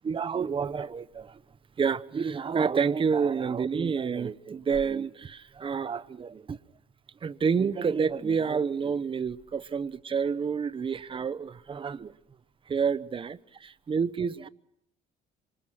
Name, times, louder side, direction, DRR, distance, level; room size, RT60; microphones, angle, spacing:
voice 1, 0.0-1.4 1.8-6.6 7.2-12.1 12.7-14.5, right 6 dB, 30° right, 1.0 m, -29 dB
27.5 x 25.0 x 6.0 m
cardioid pair, 110°, 17 cm